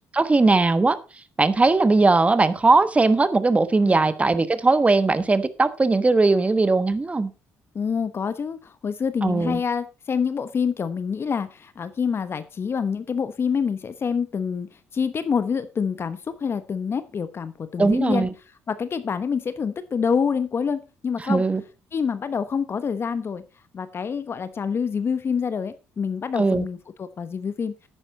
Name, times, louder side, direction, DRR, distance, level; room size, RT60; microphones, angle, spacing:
voice 1, 0.1-1.0 1.4-7.3 9.2-9.6 17.8-18.3 21.3-21.6 26.4-26.7, right 3 dB, 25° right, 14 dB, 1.2 m, -19 dB
voice 2, 7.7-14.7 14.9-18.3 18.7-21.4 21.9-23.4 23.7-27.7, left 6 dB, 45° left, 13 dB, 1.0 m, -26 dB
11.0 x 8.9 x 4.0 m, 0.30 s
supercardioid pair, 70°, 6 cm